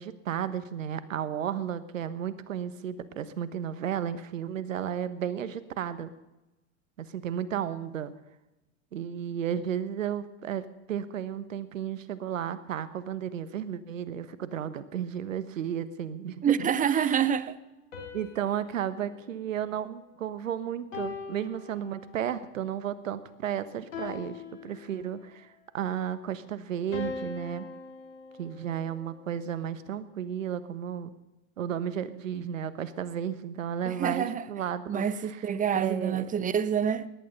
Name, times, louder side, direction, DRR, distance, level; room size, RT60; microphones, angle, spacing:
voice 1, 0.0-6.1 7.0-8.1 8.9-17.3 18.1-27.7 28.4-31.1 31.6-35.0 35.7-36.3, right 9 dB, 85° right, 1.3 m, -33 dB
voice 2, 16.4-17.6 33.9-34.5 34.9-37.1, right 8 dB, 20° right, 0.8 m, -27 dB
sound 1, 17.9-20.3 20.9-22.4 23.9-25.4 26.9-29.2, left 4 dB, 90° left, 3.7 m, -42 dB
18.0 x 11.5 x 5.5 m
hypercardioid pair, 100°, 38 cm